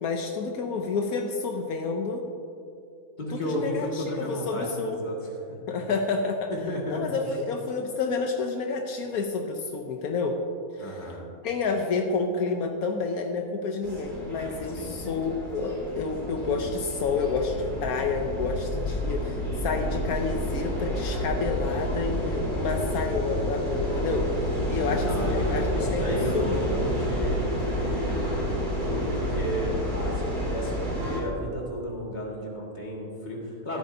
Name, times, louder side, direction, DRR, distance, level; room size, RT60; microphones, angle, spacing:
voice 1, 0.0-2.2 3.3-5.0 5.7-6.5 6.9-10.4 10.7-11.1 11.4-25.7 25.9-26.6, left 4 dB, 80° left, 3 dB, 1.2 m, -29 dB
voice 2, 3.2-5.2 5.5-5.8 6.5-7.2 10.8-11.2 14.8-14.9 25.0-33.8, equal, 30° left, -3 dB, 2.0 m, -33 dB
sound 1, 13.8-31.2, equal, 30° right, 2.8 m, -29 dB
14.0 x 12.5 x 2.7 m, 2.5 s
omnidirectional pair, 1.6 m